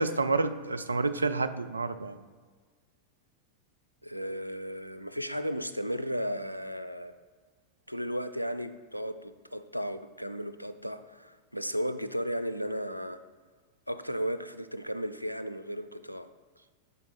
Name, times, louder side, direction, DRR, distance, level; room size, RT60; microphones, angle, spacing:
voice 1, 0.0-2.2, right 3 dB, 80° right, 10 dB, 0.4 m, -29 dB
voice 2, 4.0-7.2 7.9-13.2 13.9-16.3, equal, 90° left, 11 dB, 0.3 m, -35 dB
6.8 x 4.7 x 4.2 m, 1.5 s
figure-of-eight pair, 90°, 0 cm